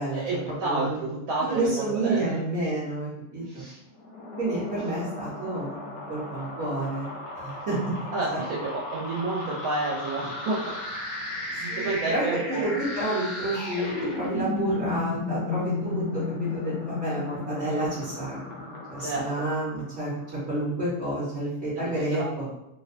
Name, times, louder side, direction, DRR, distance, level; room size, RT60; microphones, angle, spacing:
voice 1, 0.1-2.4 3.4-3.8 4.8-4.9 8.1-10.7 11.6-12.7 19.0-19.5 21.8-22.3, right 2 dB, 90° right, -5 dB, 1.0 m, -30 dB
voice 2, 1.4-3.6 4.4-7.8 11.7-16.2 16.5-20.1 20.5-22.5, right 2 dB, 55° right, -10 dB, 0.9 m, -30 dB
sound 1, 4.0-20.3, left 3 dB, 65° left, 0.9 m, -34 dB
2.6 x 2.1 x 2.4 m, 0.88 s
omnidirectional pair, 1.4 m